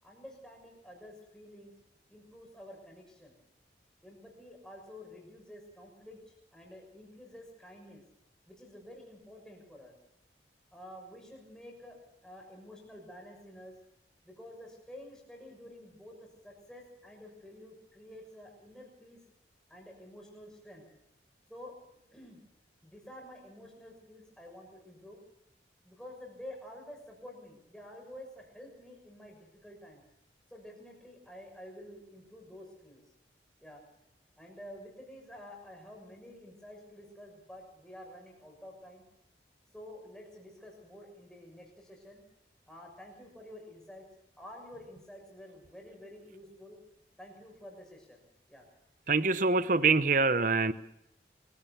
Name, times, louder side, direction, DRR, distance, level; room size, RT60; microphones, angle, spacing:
voice 1, 0.0-1.7 2.1-3.4 4.0-8.0 8.5-10.0 10.7-12.0 12.2-13.7 14.2-16.2 16.4-19.2 19.7-20.8 21.5-21.7 22.1-22.4 22.8-25.2 25.8-30.0 30.5-33.0 33.6-33.8 34.4-39.0 39.7-42.2 42.7-44.0 44.4-46.8 47.2-48.2 48.5-48.6, left 1 dB, 5° left, 6.6 m, -50 dB
voice 2, 49.1-50.7, right 4 dB, 45° right, 0.9 m, -25 dB
25.0 x 16.0 x 6.9 m
head